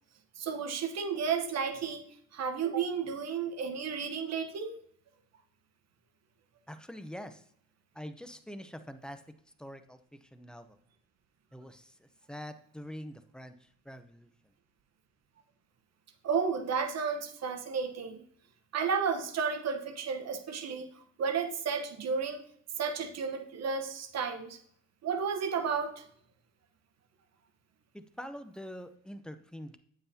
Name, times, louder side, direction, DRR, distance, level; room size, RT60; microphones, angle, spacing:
voice 1, 0.4-2.0 2.3-4.8 16.2-18.2 18.7-20.9 21.2-22.5 22.8-24.6 25.0-26.0, right 6 dB, 60° right, 7 dB, 1.0 m, -32 dB
voice 2, 6.7-7.4 7.9-9.2 9.6-10.8 11.5-14.3 27.9-29.8, equal, 5° left, 10 dB, 0.7 m, -45 dB
8.7 x 7.8 x 2.8 m, 0.64 s
cardioid pair, 90°, 30 cm